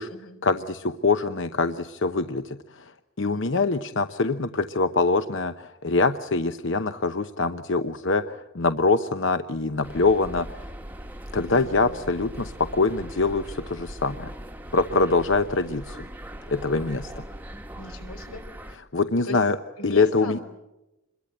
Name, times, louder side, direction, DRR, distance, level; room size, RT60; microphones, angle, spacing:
voice 1, 0.4-2.9 3.2-10.6 11.3-14.3 14.7-16.1 16.5-17.2 18.9-19.6 19.8-20.4, left 3 dB, 55° left, 9 dB, 0.9 m, -24 dB
sound 1, 9.8-18.8, right 1 dB, 10° right, 1.1 m, -40 dB
voice 2, 11.3-12.0 17.7-18.4 19.2-19.4 19.8-20.4, left 1 dB, 85° left, 7 dB, 4.8 m, -39 dB
27.5 x 22.5 x 7.9 m, 0.96 s
head